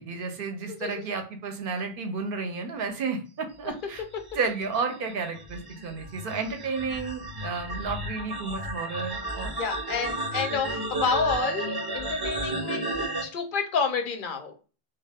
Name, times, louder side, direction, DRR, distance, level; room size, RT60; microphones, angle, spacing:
voice 1, 0.0-4.0 4.3-9.5, right 4 dB, 60° right, 5 dB, 0.7 m, -32 dB
sound 1, 3.9-13.2, right 1 dB, 30° right, 0.4 m, -33 dB
voice 2, 9.6-12.8 13.2-14.6, left 5 dB, 60° left, 5 dB, 0.6 m, -29 dB
2.3 x 2.2 x 3.3 m, 0.35 s
omnidirectional pair, 1.1 m